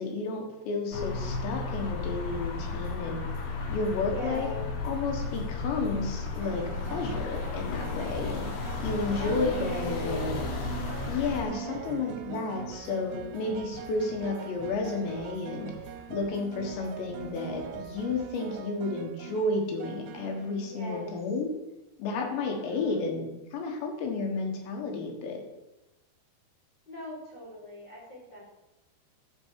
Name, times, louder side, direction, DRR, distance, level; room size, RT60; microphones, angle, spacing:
voice 1, 0.0-3.2 3.7-4.5 4.8-6.6 6.9-8.5 8.8-10.4 11.1-15.7 16.1-21.5 22.0-25.4, left 3 dB, 85° left, 2 dB, 3.7 m, -32 dB
sound 1, 0.9-11.4, left 4 dB, 70° left, 2.6 m, -34 dB
sound 2, 2.6-18.6, right 3 dB, 50° right, 2.0 m, -50 dB
voice 2, 4.0-4.7 9.1-10.6 11.4-12.0 20.7-21.1 22.7-23.1 26.9-28.5, left 1 dB, 40° left, -5 dB, 1.6 m, -40 dB
sound 3, 6.4-21.2, right 11 dB, 80° right, 2.6 m, -43 dB
12.5 x 6.0 x 4.6 m, 1.0 s
omnidirectional pair, 4.9 m